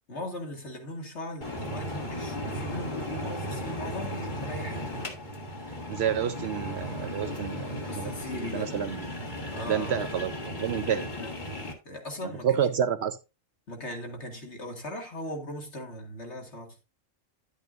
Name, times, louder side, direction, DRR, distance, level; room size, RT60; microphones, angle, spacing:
voice 1, 0.1-4.9 7.9-8.7 9.5-10.0 10.6-12.5 13.7-16.8, left 1 dB, 60° left, 2.5 m, -39 dB
sound 1, 1.4-11.7, left 1 dB, 35° left, 2.0 m, -35 dB
voice 2, 5.9-9.2 9.7-11.1 12.2-13.2, right 8 dB, 65° right, 0.7 m, -29 dB
10.5 x 8.4 x 2.5 m
omnidirectional pair, 1.3 m